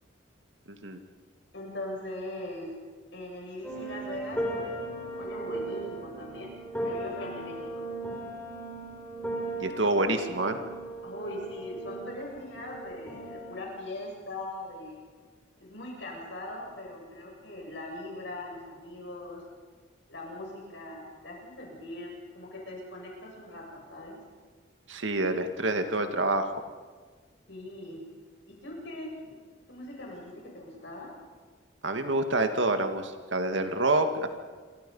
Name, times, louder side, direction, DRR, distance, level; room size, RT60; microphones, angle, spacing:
voice 1, 0.7-1.0 9.6-10.6 24.9-26.5 31.8-34.3, right 2 dB, 80° right, 7 dB, 2.1 m, -27 dB
voice 2, 1.5-2.7 3.1-4.7 5.2-6.5 6.8-7.9 11.0-15.0 15.6-19.4 20.1-24.2 27.5-28.0 28.5-29.4 29.7-31.1, left 1 dB, 65° left, -2 dB, 7.9 m, -40 dB
sound 1, 3.6-13.5, right 1 dB, 10° left, 5.3 m, -37 dB
28.5 x 24.5 x 5.6 m, 1.5 s
head